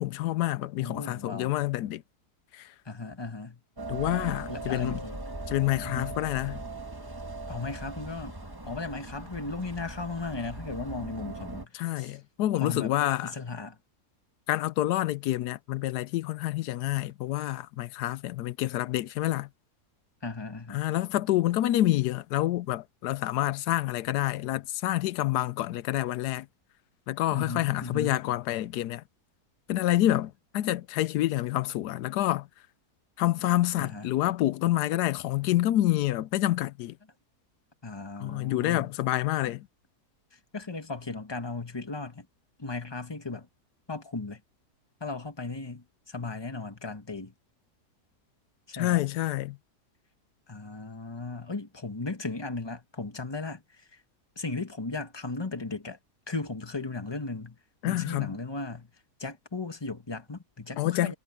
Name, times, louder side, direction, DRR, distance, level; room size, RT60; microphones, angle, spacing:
voice 1, 0.0-2.0 2.5-2.7 3.9-5.0 5.5-6.6 11.7-13.3 14.5-19.5 20.7-26.5 27.1-29.0 29.7-32.5 33.2-37.0 38.2-39.7 48.7-49.6 57.8-58.3 60.8-61.1, left 15 dB, 90° left, 1.2 m, -28 dB
voice 2, 0.8-1.5 2.8-3.6 4.5-5.2 5.8-6.2 7.5-8.4 8.7-12.2 12.6-13.0 13.2-13.8 20.2-20.9 27.3-28.2 33.8-34.1 37.8-38.9 40.3-42.3 42.6-43.5 43.9-44.4 45.0-47.3 48.7-49.0 50.5-54.0 54.3-56.0 56.3-57.6 57.9-58.9 59.2-61.1, left 3 dB, 15° left, 1.5 m, -36 dB
sound 1, 3.8-11.7, right 2 dB, 15° right, 1.5 m, -39 dB
omnidirectional pair, 1.7 m